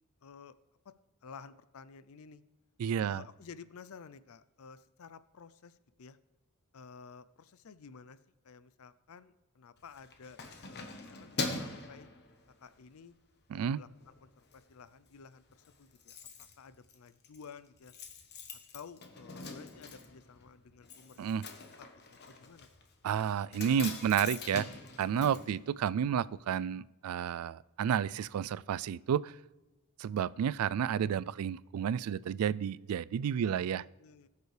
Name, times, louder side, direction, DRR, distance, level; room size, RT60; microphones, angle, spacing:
voice 1, 0.2-0.5 0.8-0.9 1.2-2.4 3.0-6.2 6.7-8.2 8.4-10.4 10.7-12.1 12.6-13.2 13.5-17.9 18.5-21.3 21.8-22.7 33.4-34.3, left 6 dB, 70° left, 15 dB, 0.5 m, -53 dB
voice 2, 2.8-3.2 13.5-13.8 21.2-21.4 23.0-24.7 25.0-29.3 30.0-33.8, right 8 dB, 80° right, 20 dB, 0.3 m, -31 dB
Keys jangling, 9.8-12.9 13.3-13.5 13.9-14.6 14.9-15.0 15.2-15.3 15.5-26.3 26.6-26.7, left 3 dB, 50° left, 1.2 m, -43 dB
19.5 x 6.7 x 3.3 m, 1.1 s
head